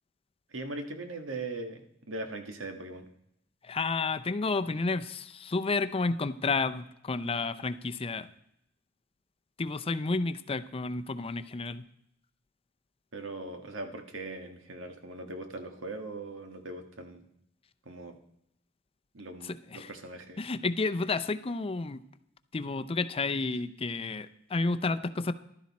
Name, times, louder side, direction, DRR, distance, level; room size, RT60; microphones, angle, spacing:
voice 1, 0.5-3.1 13.1-17.2 17.8-18.2 19.1-20.4, right 2 dB, 85° right, 6 dB, 1.6 m, -40 dB
voice 2, 3.6-8.3 9.6-11.8 19.4-19.9 20.4-22.0 22.5-25.3, left 3 dB, 30° left, 11 dB, 0.5 m, -31 dB
14.5 x 12.0 x 4.2 m, 0.76 s
head